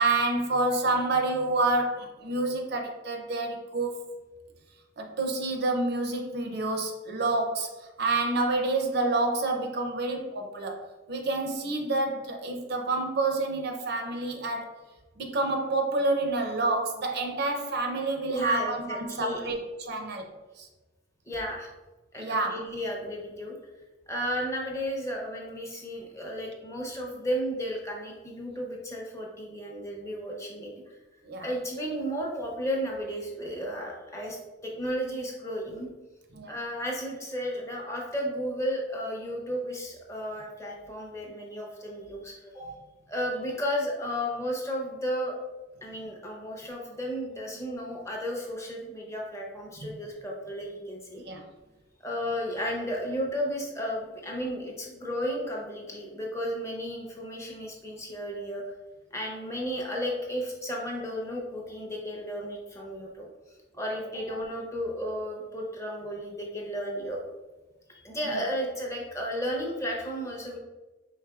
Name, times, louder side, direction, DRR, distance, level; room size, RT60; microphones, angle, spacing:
voice 1, 0.0-4.1 5.0-10.8 11.1-14.7 15.2-20.3 20.6-20.7 22.2-22.6 31.2-31.5 36.3-36.6 42.6-42.7 49.9-50.0 51.3-51.5 68.3-68.4, right 2 dB, 50° right, 3 dB, 0.5 m, -28 dB
voice 2, 18.3-19.5 21.3-21.7 22.1-23.6 24.1-31.0 31.4-35.9 36.5-42.6 43.1-45.3 45.8-51.2 52.0-58.6 59.1-67.2 67.9-70.6, equal, 15° left, -1 dB, 0.6 m, -33 dB
4.7 x 3.4 x 2.3 m, 1.2 s
head